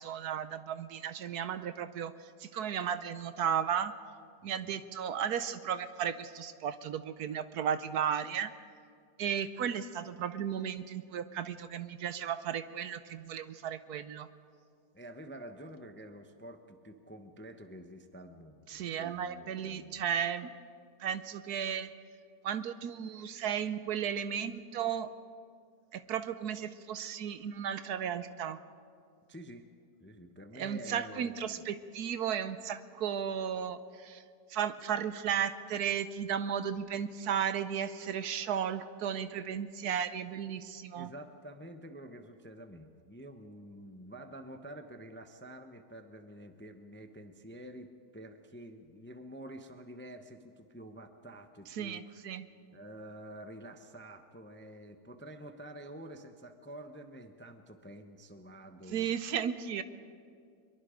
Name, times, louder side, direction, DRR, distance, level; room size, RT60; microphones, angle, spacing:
voice 1, 0.0-2.1 2.4-3.9 4.4-8.5 9.2-14.3 18.7-20.5 21.0-21.9 22.4-25.1 25.9-28.6 30.6-34.2 34.5-41.1 51.7-52.5 58.9-59.8, right 8 dB, 70° right, 12 dB, 1.2 m, -34 dB
voice 2, 4.4-4.8 14.9-20.0 29.3-29.6 30.0-31.6 40.7-52.2 52.7-59.1, right 1 dB, 10° left, 7 dB, 0.6 m, -49 dB
23.0 x 22.5 x 5.1 m, 2.3 s
omnidirectional pair, 1.8 m